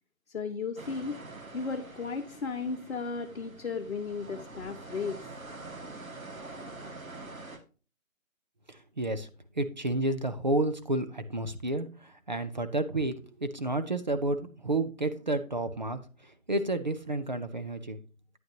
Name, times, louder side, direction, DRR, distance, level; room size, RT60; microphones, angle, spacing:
voice 1, 0.3-1.2 1.5-5.2, left 5 dB, 55° left, 2 dB, 1.0 m, -35 dB
sound 1, 0.8-7.6, right 2 dB, 80° right, 2.0 m, -45 dB
voice 2, 8.7-9.3 9.6-16.0 16.5-18.0, right 2 dB, 35° right, 9 dB, 0.6 m, -30 dB
9.2 x 8.8 x 2.7 m, 0.35 s
figure-of-eight pair, 155°, 41 cm